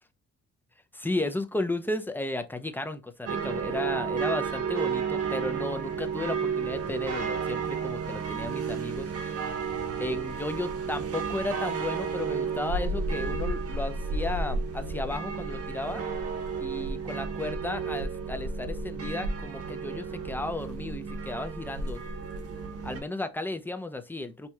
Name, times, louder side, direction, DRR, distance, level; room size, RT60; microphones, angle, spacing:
voice 1, 0.9-9.6 10.0-16.0 16.6-22.0 22.8-24.5, left 2 dB, 5° left, 0.4 m, -34 dB
sound 1, 3.3-23.0, right 5 dB, 50° right, 0.9 m, -32 dB
4.4 x 2.7 x 2.3 m
cardioid pair, 90°, 30 cm